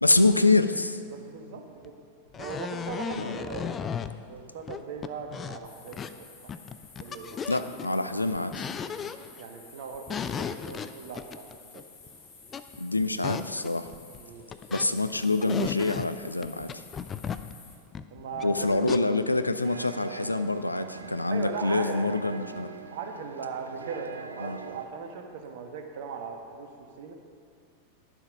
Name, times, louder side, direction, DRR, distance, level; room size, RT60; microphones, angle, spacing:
voice 1, 0.0-1.0 3.2-3.4 7.5-8.7 12.8-13.9 14.7-16.8 18.4-22.7 24.4-24.6, left 2 dB, 85° left, 11 dB, 0.5 m, -26 dB
voice 2, 1.1-1.9 2.4-3.8 4.3-6.6 7.0-7.4 9.4-11.8 14.2-14.5 18.1-18.8 21.3-22.0 22.9-27.1, right 5 dB, 55° right, 4 dB, 1.3 m, -39 dB
sound 1, 1.8-1.9 2.3-4.1 4.7-6.2 6.5-7.9 8.4-9.4 9.9-12.1 12.5-12.8 13.0-14.9 15.2-16.1 16.4-19.0, left 7 dB, 25° left, 0.4 m, -35 dB
sound 2, 5.6-17.7, left 4 dB, 45° left, 2.4 m, -52 dB
sound 3, 19.6-24.9, right 5 dB, 75° right, 0.6 m, -43 dB
11.5 x 7.4 x 5.2 m, 2.3 s
figure-of-eight pair, 90°, 0 cm